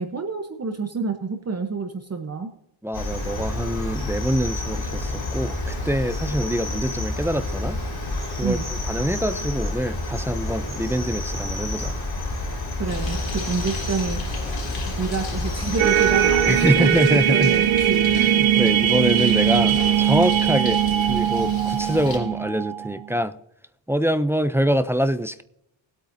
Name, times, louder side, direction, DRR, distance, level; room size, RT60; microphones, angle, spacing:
voice 1, 0.0-2.5 8.4-8.7 12.8-14.2 14.9-18.2, right 4 dB, 30° right, 5 dB, 0.9 m, -28 dB
voice 2, 2.8-7.8 8.4-12.0 16.5-17.5 18.1-20.8 21.1-23.4 23.9-25.4, equal, 5° right, 10 dB, 0.4 m, -24 dB
Cricket, 2.9-16.7, left 2 dB, 50° left, 4.9 m, -29 dB
Bird, 12.9-22.2, left 3 dB, 65° left, 3.6 m, -35 dB
sound 1, 15.8-23.1, right 11 dB, 75° right, 0.8 m, -20 dB
20.0 x 8.5 x 2.7 m, 0.81 s
wide cardioid pair, 140°, 48 cm